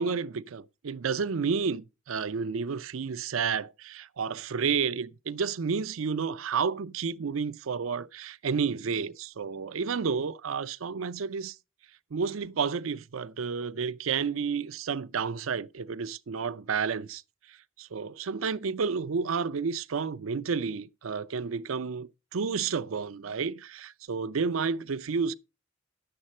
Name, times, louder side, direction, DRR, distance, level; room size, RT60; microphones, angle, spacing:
voice 1, 0.0-11.6 12.1-17.2 17.8-25.3, right 5 dB, 90° right, 0.5 m, -31 dB
11.0 x 7.8 x 4.2 m
head